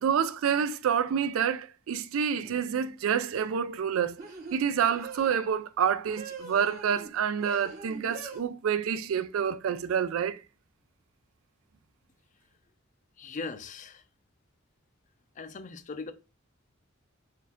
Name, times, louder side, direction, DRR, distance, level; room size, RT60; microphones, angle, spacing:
voice 1, 0.0-4.2 4.5-10.4, right 7 dB, 80° right, 0.4 m, -28 dB
sound 1, 2.4-2.7 4.2-5.4 6.1-7.1 7.4-8.4, right 4 dB, 45° right, 1.6 m, -43 dB
voice 2, 13.2-14.0 15.4-16.1, left 4 dB, 40° left, 0.4 m, -39 dB
4.5 x 2.5 x 3.5 m
head